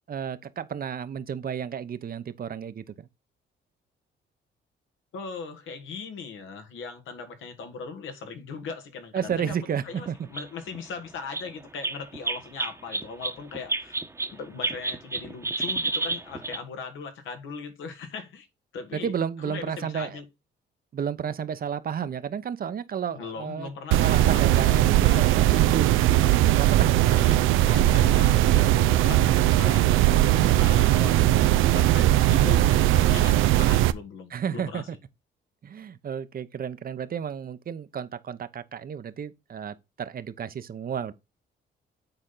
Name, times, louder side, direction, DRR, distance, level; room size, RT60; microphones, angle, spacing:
voice 1, 0.0-2.8 9.1-10.2 19.0-20.2 20.9-23.7 24.0-26.2 26.5-27.2 34.3-35.0 35.6-41.1, right 8 dB, 50° right, 0.8 m, -32 dB
voice 2, 5.1-9.6 9.8-14.0 14.3-18.5 18.7-20.3 23.1-25.7 27.2-34.8, left 5 dB, 80° left, 1.8 m, -39 dB
sound 1, 9.3-9.4 10.1-10.2 10.3-10.5 10.7-10.8 11.3-11.5 11.8-14.3 14.6-16.6, right 2 dB, 15° right, 1.0 m, -30 dB
sound 2, 23.9-33.9, right 14 dB, 90° right, 0.5 m, -19 dB
8.8 x 4.3 x 3.9 m
cardioid pair, 90°, 20 cm